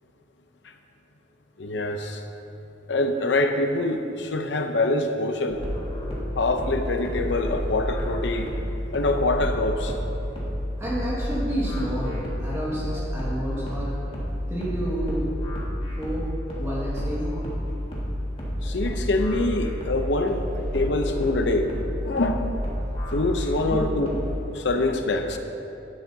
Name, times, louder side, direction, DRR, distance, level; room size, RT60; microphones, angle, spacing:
voice 1, 1.6-2.2 2.9-5.6 6.4-8.5 8.9-10.0 18.6-20.5 20.7-21.7 22.0-22.4 23.1-24.1 24.5-25.4, left 2 dB, 70° left, 6 dB, 0.7 m, -25 dB
sound 1, 5.5-24.3, equal, 30° left, 2.0 m, -30 dB
voice 2, 10.8-13.9 14.5-15.3 16.0-16.3 16.6-17.4 23.7-23.9, equal, 15° right, -8 dB, 1.8 m, -30 dB
11.0 x 10.5 x 2.8 m, 2.9 s
head